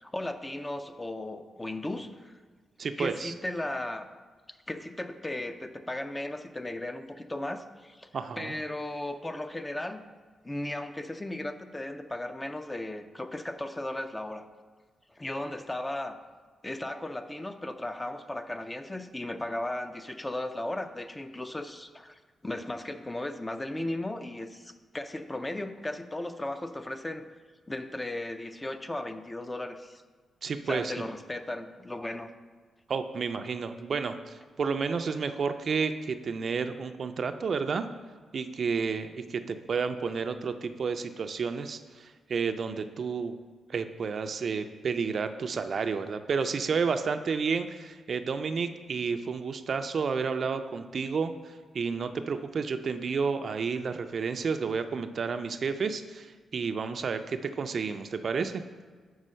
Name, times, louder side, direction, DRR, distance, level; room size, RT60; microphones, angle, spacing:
voice 1, 0.0-2.4 3.0-4.1 4.7-8.1 8.4-10.1 10.4-14.5 15.2-16.2 16.6-27.2 27.7-30.0 30.7-32.3, left 1 dB, 15° left, 8 dB, 0.4 m, -36 dB
voice 2, 2.8-3.3 8.1-8.5 30.4-30.9 32.9-37.9 38.3-43.3 43.7-56.3 56.5-58.6, right 5 dB, 50° right, 9 dB, 0.4 m, -31 dB
5.4 x 4.8 x 6.3 m, 1.5 s
cardioid pair, 120°, 0 cm